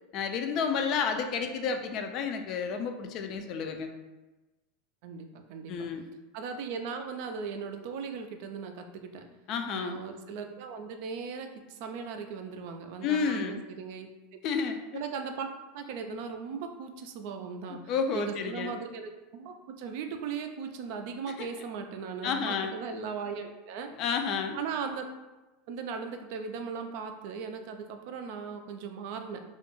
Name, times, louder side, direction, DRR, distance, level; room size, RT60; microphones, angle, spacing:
voice 1, 0.1-3.9 5.7-6.0 9.5-10.0 13.0-13.6 14.4-15.0 17.7-18.7 21.4-21.5 22.2-22.7 24.0-24.6, left 6 dB, 50° left, 6 dB, 0.3 m, -31 dB
voice 2, 5.0-5.7 6.3-9.3 9.7-14.1 14.9-15.5 15.7-24.0 24.5-25.1 25.7-29.4, right 6 dB, 65° right, 6 dB, 0.3 m, -38 dB
2.3 x 2.1 x 3.0 m, 1.1 s
hypercardioid pair, 100°, 0 cm